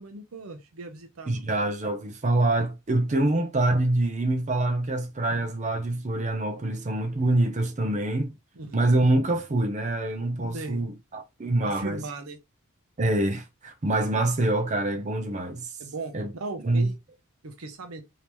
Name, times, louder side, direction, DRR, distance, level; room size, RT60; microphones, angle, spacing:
voice 1, 0.0-1.5 8.6-8.8 10.5-10.8 11.6-12.4 15.8-17.0 17.4-18.0, right 3 dB, 90° right, 0.7 m, -38 dB
voice 2, 1.3-8.3 8.7-12.0 13.0-15.7 16.1-16.3 16.6-16.9, right 2 dB, 35° right, 0.6 m, -25 dB
3.4 x 2.8 x 3.0 m
head